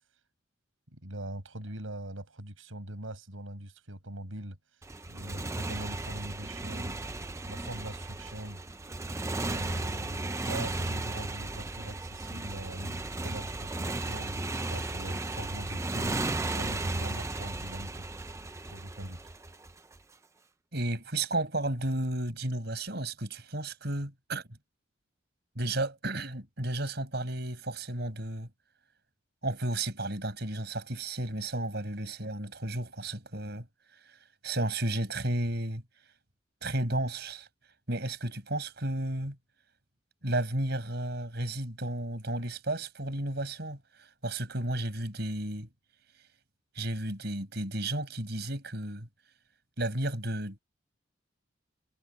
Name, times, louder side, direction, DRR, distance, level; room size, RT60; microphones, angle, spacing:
voice 1, 0.9-4.6 5.1-7.0 7.4-8.6 9.4-18.1 18.7-19.2, right 1 dB, 90° right, 5.4 m, -42 dB
Motorcycle, 4.8-20.0, right 2 dB, 15° right, 0.6 m, -35 dB
voice 2, 20.7-24.4 25.6-28.5 29.4-33.7 34.0-34.2 34.4-35.8 36.6-37.5 37.9-39.4 40.2-45.7 46.7-49.1 49.8-50.6, right 1 dB, 55° right, 5.5 m, -33 dB
head